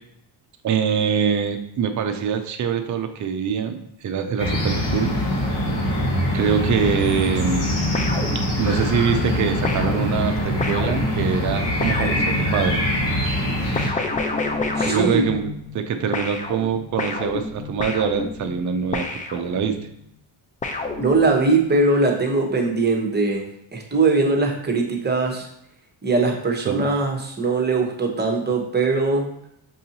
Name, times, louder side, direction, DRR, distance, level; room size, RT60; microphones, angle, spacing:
voice 1, 0.6-5.2 6.3-7.7 8.3-12.8 14.8-19.8 26.7-26.9, right 7 dB, 40° right, 6 dB, 0.5 m, -24 dB
sound 1, 4.4-13.9, left 1 dB, 55° left, 1.4 m, -23 dB
sound 2, 7.9-8.9 9.6-12.8 13.7-15.9 16.1-19.9 20.6-21.6, left 3 dB, 20° left, 0.3 m, -29 dB
voice 2, 14.8-15.2 21.0-23.5 23.7-25.5 26.0-29.3, right 3 dB, 20° right, 1 dB, 0.8 m, -21 dB
5.5 x 2.6 x 2.8 m, 0.76 s
cardioid pair, 85°, 49 cm